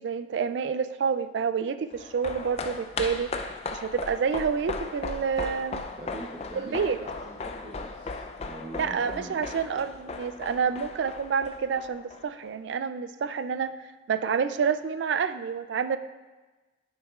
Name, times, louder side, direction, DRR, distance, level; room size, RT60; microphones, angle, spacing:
voice 1, 0.0-3.3 3.7-5.8 6.5-7.0 8.8-13.7 14.1-16.0, right 6 dB, 80° right, 12 dB, 0.3 m, -28 dB
sound 1, 1.9-12.5 12.8-12.9, left 3 dB, 35° left, 0.4 m, -37 dB
voice 2, 6.0-9.4, right 2 dB, 30° right, -4 dB, 0.8 m, -43 dB
9.9 x 6.4 x 2.4 m, 1.2 s
head